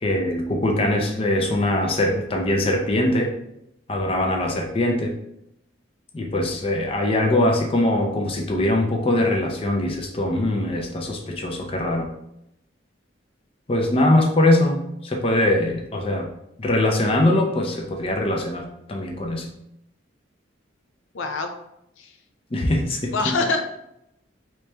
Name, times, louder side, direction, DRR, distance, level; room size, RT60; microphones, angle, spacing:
voice 1, 0.0-3.3 3.9-5.2 6.1-12.1 13.7-16.3 16.6-19.5 22.5-23.3, left 1 dB, 30° left, 1 dB, 0.5 m, -22 dB
voice 2, 21.1-21.5 22.0-22.1 23.1-23.7, left 3 dB, 85° left, 5 dB, 0.5 m, -24 dB
3.1 x 3.1 x 3.3 m, 0.82 s
head